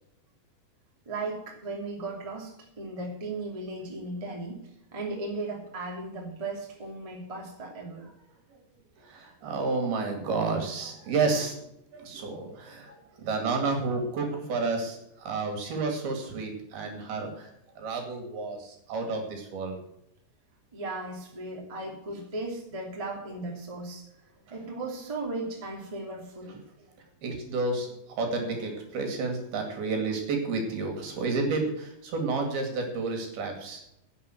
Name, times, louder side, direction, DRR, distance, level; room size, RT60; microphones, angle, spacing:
voice 1, 1.1-4.6 4.9-8.1 12.9-13.0 20.7-24.0 24.5-26.6, right 2 dB, 10° right, -1 dB, 2.0 m, -36 dB
voice 2, 9.0-11.6 11.9-17.5 17.8-19.8 27.2-33.8, right 3 dB, 60° right, 3 dB, 4.0 m, -30 dB
11.0 x 7.7 x 7.7 m, 0.78 s
omnidirectional pair, 5.1 m